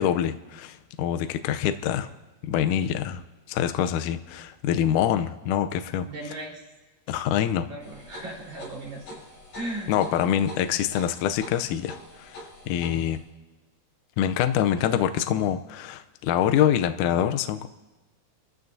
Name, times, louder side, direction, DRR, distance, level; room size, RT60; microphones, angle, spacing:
voice 1, 0.0-2.1 2.4-3.2 3.5-6.1 7.1-7.7 9.9-13.2 14.2-17.7, left 10 dB, 85° left, 8 dB, 1.8 m, -25 dB
voice 2, 6.1-6.6 7.7-9.2 9.5-9.9, right 1 dB, 50° right, -2 dB, 4.9 m, -36 dB
sound 1, 7.8-13.2, left 1 dB, 55° left, 8.6 m, -45 dB
29.5 x 14.5 x 2.7 m, 1.2 s
omnidirectional pair, 4.5 m